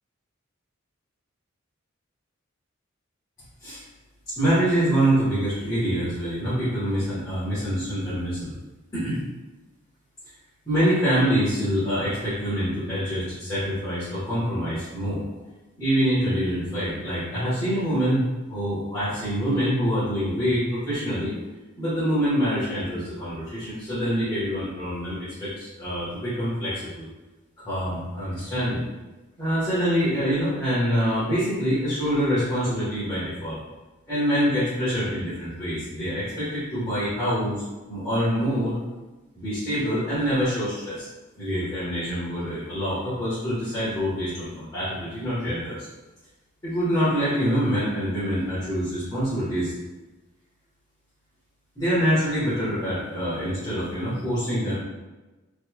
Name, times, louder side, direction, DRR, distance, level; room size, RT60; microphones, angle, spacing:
voice 1, 4.4-8.5 8.9-9.2 10.6-15.2 15.8-21.3 21.8-27.0 27.6-28.8 29.4-33.6 34.1-37.6 37.9-38.8 39.3-41.1 41.4-45.9 46.6-49.7 51.7-54.8, equal, 20° left, -14 dB, 1.4 m, -25 dB
4.1 x 3.2 x 2.3 m, 1.1 s
head